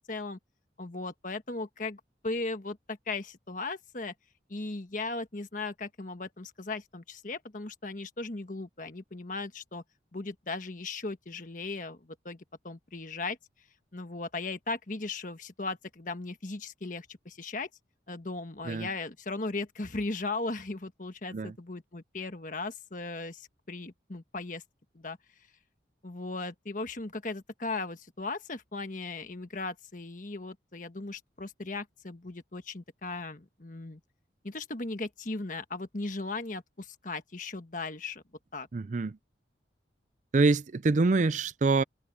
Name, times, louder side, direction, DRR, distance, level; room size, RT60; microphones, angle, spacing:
voice 1, 0.1-0.4 0.8-4.1 4.5-9.8 10.1-13.4 13.9-17.7 18.1-24.6 24.9-25.2 26.0-34.0 34.4-38.2 38.5-38.7, left 3 dB, 45° left, 1.4 m, -37 dB
voice 2, 38.7-39.2 40.3-41.8, right 3 dB, 40° right, 0.4 m, -25 dB
head